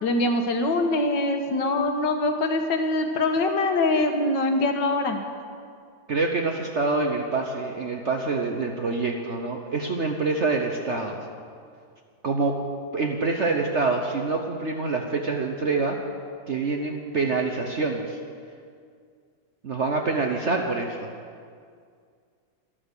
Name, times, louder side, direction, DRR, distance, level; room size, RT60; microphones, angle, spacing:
voice 1, 0.0-5.2, left 2 dB, 70° left, 5 dB, 1.8 m, -23 dB
voice 2, 6.1-11.2 12.2-12.6 12.9-16.0 16.5-18.2 19.6-21.0, right 3 dB, 50° right, 2 dB, 0.9 m, -26 dB
13.0 x 11.5 x 6.7 m, 2.2 s
omnidirectional pair, 2.1 m